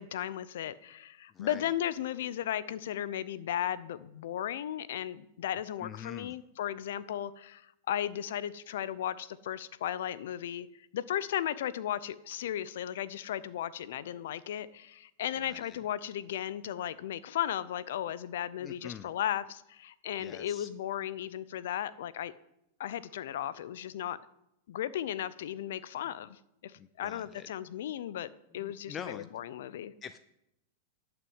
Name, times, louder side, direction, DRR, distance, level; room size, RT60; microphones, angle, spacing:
voice 1, 0.0-10.7 10.9-22.3 22.8-24.2 24.7-29.9, left 11 dB, 75° left, 17 dB, 0.6 m, -35 dB
voice 2, 1.3-1.7 5.8-6.4 15.4-15.8 18.6-19.1 20.2-20.7 26.8-27.5 28.6-29.3 30.0-30.2, left 8 dB, 25° left, 12 dB, 0.5 m, -45 dB
11.0 x 6.1 x 8.1 m, 0.82 s
supercardioid pair, 140°, 0 cm